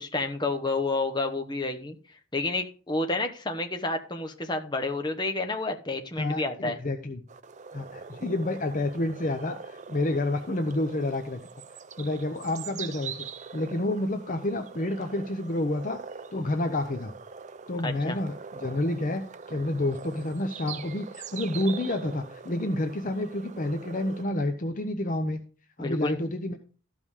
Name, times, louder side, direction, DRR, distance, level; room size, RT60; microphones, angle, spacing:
voice 1, 0.0-2.0 2.3-6.8 17.8-18.2 25.8-26.2, left 2 dB, 20° left, 4 dB, 1.0 m, -30 dB
voice 2, 6.2-7.2 7.7-11.4 12.0-13.1 13.5-16.0 16.3-17.1 17.7-19.2 19.5-25.4 25.8-26.6, left 1 dB, 40° left, 7 dB, 0.7 m, -29 dB
sound 1, 7.3-24.2, right 6 dB, 35° right, 0.5 m, -43 dB
13.0 x 5.5 x 4.8 m, 0.39 s
head